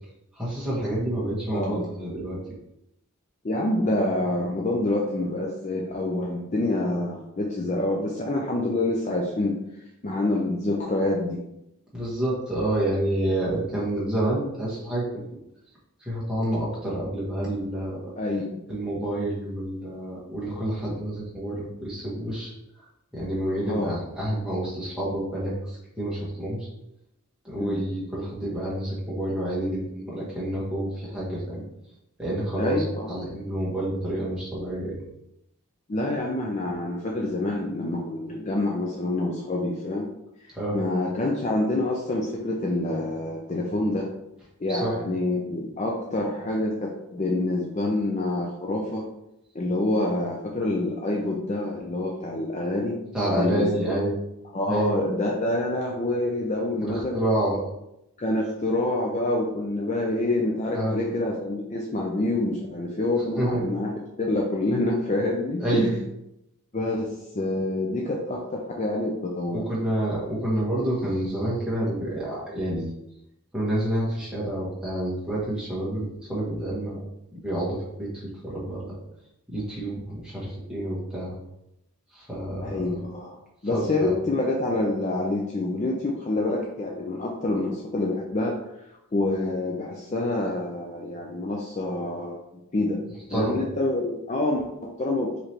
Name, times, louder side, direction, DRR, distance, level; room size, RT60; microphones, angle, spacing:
voice 1, 0.3-2.4 11.9-15.2 16.0-18.1 18.7-22.5 23.1-26.7 27.4-31.6 32.2-35.0 40.5-40.8 44.7-44.9 53.1-54.2 54.7-54.9 57.1-57.6 60.7-61.0 63.4-63.6 65.6-65.9 69.5-72.9 73.5-77.0 77.4-78.9 79.5-81.3 82.1-83.0 83.7-84.1 93.3-93.6, right 1 dB, 5° right, -8 dB, 1.3 m, -28 dB
voice 2, 1.5-1.9 3.4-9.6 10.0-11.4 18.2-18.6 23.7-24.0 27.6-27.8 32.6-33.1 35.9-40.1 40.4-44.1 44.6-49.1 49.5-53.0 53.3-53.9 54.5-57.2 58.2-63.9 64.2-65.9 66.7-69.7 82.6-83.4 83.6-88.6 89.1-92.4 92.7-93.0 93.3-95.4, left 2 dB, 30° left, -1 dB, 0.4 m, -27 dB
4.8 x 3.2 x 2.9 m, 0.85 s
head